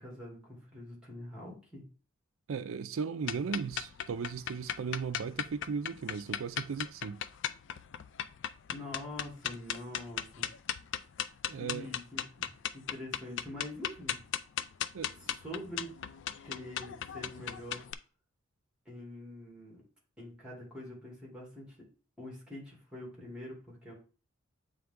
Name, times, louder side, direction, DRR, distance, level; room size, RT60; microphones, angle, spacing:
voice 1, 0.0-1.8 8.7-10.5 11.6-14.2 15.4-15.9 16.4-17.9 18.9-19.8 20.2-21.8 22.2-23.9, left 1 dB, 5° right, 2.4 m, -45 dB
voice 2, 2.5-7.2 11.5-11.9 14.9-15.3, right 5 dB, 65° right, 0.4 m, -37 dB
sound 1, 3.2-17.9, left 10 dB, 55° left, 0.3 m, -37 dB
8.0 x 3.4 x 3.7 m
head